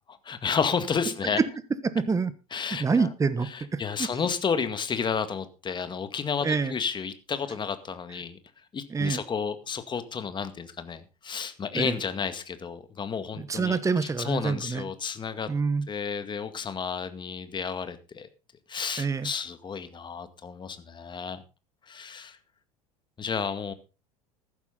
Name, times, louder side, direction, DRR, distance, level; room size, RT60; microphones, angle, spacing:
voice 1, 0.0-1.4 2.5-3.1 3.4-8.4 8.7-15.5 15.9-18.3 18.7-21.4 21.9-22.4 23.2-23.7, left 6 dB, 25° left, 11 dB, 2.0 m, -31 dB
voice 2, 1.9-2.3 2.8-3.8 6.4-6.7 8.9-9.2 11.7-12.0 13.4-14.9 15.5-15.9 19.0-19.3, right 5 dB, 15° right, 15 dB, 1.2 m, -26 dB
14.5 x 12.0 x 3.9 m, 0.30 s
figure-of-eight pair, 75°, 18 cm